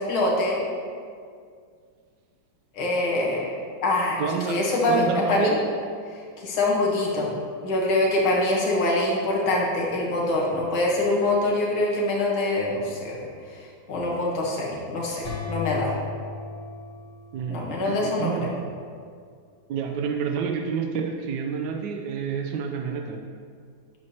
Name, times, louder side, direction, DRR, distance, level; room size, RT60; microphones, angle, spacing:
voice 1, 0.1-0.6 2.7-3.5 3.8-4.2 4.5-5.5 6.4-7.4 7.6-13.3 13.6-15.9 17.5-18.3, left 2 dB, 85° left, -3 dB, 2.1 m, -24 dB
voice 2, 4.2-4.6 4.9-5.6 17.3-18.5 19.7-23.2, right 6 dB, 75° right, 3 dB, 1.0 m, -29 dB
sound 1, 15.2-18.0, left 5 dB, 55° left, 1.9 m, -35 dB
8.6 x 6.4 x 2.8 m, 2.2 s
omnidirectional pair, 2.2 m